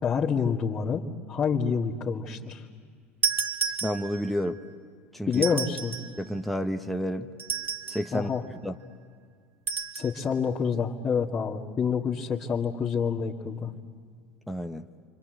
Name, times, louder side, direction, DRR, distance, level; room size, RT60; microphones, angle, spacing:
voice 1, 0.0-2.6 5.3-6.0 8.1-8.4 9.9-13.7, left 6 dB, 35° left, -6 dB, 2.1 m, -27 dB
sound 1, 3.2-4.4 5.3-6.2 7.4-8.2 9.7-10.1, right 6 dB, 30° right, 2.1 m, -31 dB
voice 2, 3.8-4.6 5.1-5.4 6.2-7.3 7.9-8.3 8.6-8.7 14.5-14.8, equal, ahead, 5 dB, 1.1 m, -30 dB
29.0 x 25.0 x 7.9 m, 2.1 s
hypercardioid pair, 75°, 7 cm